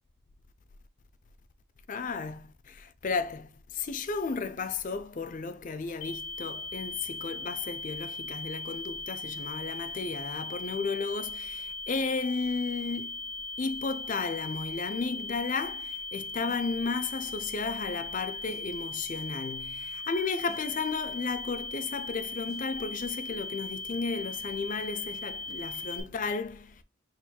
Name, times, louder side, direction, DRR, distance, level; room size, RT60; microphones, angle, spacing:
voice 1, 1.9-13.2 13.6-26.8, left 4 dB, 35° left, 0.4 m, -34 dB
sound 1, 6.0-26.0, left 3 dB, 75° left, 0.8 m, -39 dB
sound 2, 16.5-16.9 18.5-18.9 20.5-20.9 22.5-22.9, right 2 dB, 30° right, 1.5 m, -54 dB
4.3 x 4.0 x 2.2 m
head